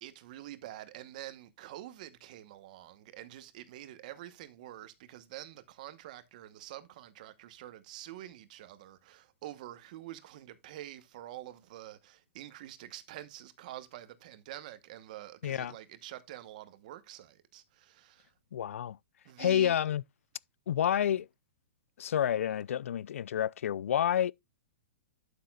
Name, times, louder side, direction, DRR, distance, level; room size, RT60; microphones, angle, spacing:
voice 1, 0.0-18.3 19.2-19.8, right 14 dB, 35° right, 1.0 m, -47 dB
voice 2, 15.4-15.7 18.5-19.0 19.4-20.0 20.7-21.3 22.0-24.3, left 10 dB, 80° left, 0.4 m, -29 dB
12.0 x 6.6 x 2.3 m
hypercardioid pair, 175°, 7 cm